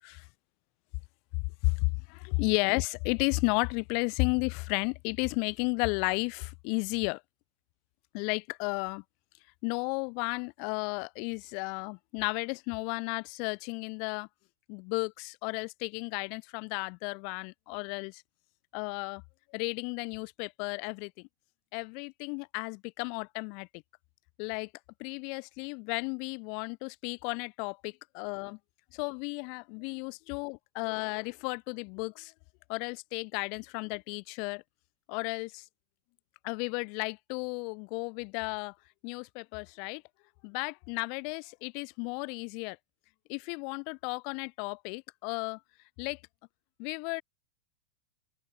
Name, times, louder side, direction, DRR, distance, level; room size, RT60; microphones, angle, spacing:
voice 1, 1.6-7.2 8.1-9.0 9.6-14.3 14.7-18.2 18.7-19.2 19.5-21.3 21.7-23.8 24.4-24.7 25.0-28.6 28.9-32.3 32.7-34.6 35.1-35.7 36.4-38.7 39.0-40.0 40.4-42.8 43.3-45.6 46.0-46.2 46.8-47.2, left 37 dB, 45° left, 0.3 m, -33 dB
open air
figure-of-eight pair, 90°, 0 cm